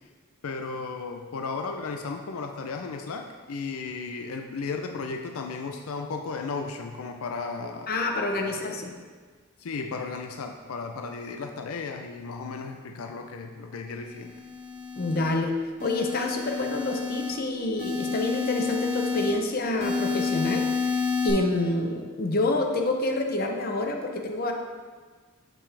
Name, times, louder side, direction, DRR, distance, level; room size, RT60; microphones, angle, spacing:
voice 1, 0.4-7.9 8.3-8.6 9.6-14.3, left 4 dB, 80° left, 4 dB, 0.5 m, -35 dB
voice 2, 7.9-8.9 15.0-15.5 15.8-20.6 21.2-24.5, left 2 dB, 45° left, 3 dB, 0.7 m, -27 dB
sound 1, 14.2-15.3 15.8-17.3 17.8-19.3 19.8-21.3, left 5 dB, 55° right, 1.6 m, -29 dB
7.0 x 5.8 x 3.3 m, 1.5 s
head